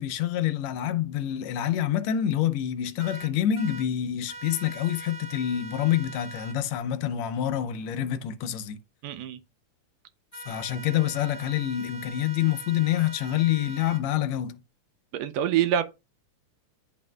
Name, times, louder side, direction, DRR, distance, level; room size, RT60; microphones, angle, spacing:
voice 1, 0.0-8.8 10.5-14.6, left 11 dB, 80° left, 1.8 m, -27 dB
sound 1, 3.0-3.9 4.3-6.6 10.3-14.0, right 3 dB, 45° right, 1.6 m, -42 dB
voice 2, 9.0-9.4 15.1-15.8, right 10 dB, 80° right, 1.7 m, -25 dB
10.0 x 4.2 x 2.2 m
omnidirectional pair, 3.3 m